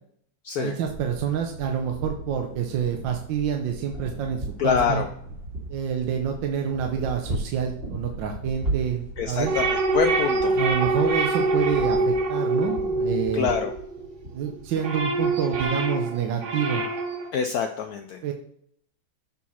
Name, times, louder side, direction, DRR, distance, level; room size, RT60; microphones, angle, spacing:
voice 1, 0.6-5.1 5.7-9.5 10.5-13.6 14.3-16.8 18.2-18.3, right 8 dB, 70° right, 3 dB, 1.4 m, -28 dB
sound 1, 0.8-11.9, right 2 dB, 85° right, 2.0 m, -42 dB
sound 2, 3.9-15.6, right 2 dB, 30° right, 1.9 m, -36 dB
voice 2, 4.6-5.1 9.2-10.6 13.3-13.7 17.3-18.2, left 6 dB, 85° left, 5 dB, 0.8 m, -25 dB
sound 3, 9.5-14.1 14.5-17.3, right 2 dB, 50° right, 0.9 m, -25 dB
7.1 x 4.6 x 4.2 m, 0.68 s
omnidirectional pair, 2.2 m